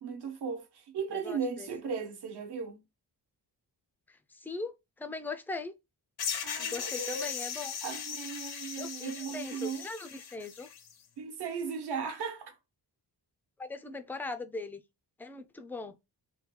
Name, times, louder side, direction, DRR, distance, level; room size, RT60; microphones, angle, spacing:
voice 1, 0.0-2.8 6.4-7.3 7.8-9.9 11.2-12.6, right 6 dB, 75° right, 1.0 m, -37 dB
voice 2, 1.1-1.7 4.1-5.7 6.6-7.8 8.5-10.7 13.6-14.8 15.2-16.0, left 3 dB, 5° left, 0.3 m, -40 dB
sound 1, 6.2-10.9, left 7 dB, 65° left, 0.7 m, -38 dB
3.8 x 2.2 x 4.2 m
wide cardioid pair, 150°, 41 cm